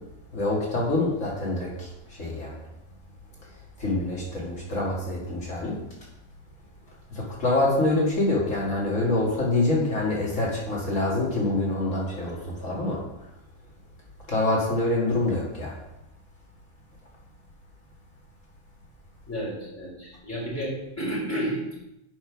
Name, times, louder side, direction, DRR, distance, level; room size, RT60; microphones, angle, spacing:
voice 1, 0.3-2.6 3.8-5.8 7.1-13.0 14.3-15.7, left 2 dB, 70° left, -4 dB, 2.6 m, -26 dB
voice 2, 19.3-21.8, right 1 dB, 10° left, -5 dB, 3.8 m, -31 dB
8.8 x 5.6 x 5.9 m, 0.89 s
omnidirectional pair, 1.4 m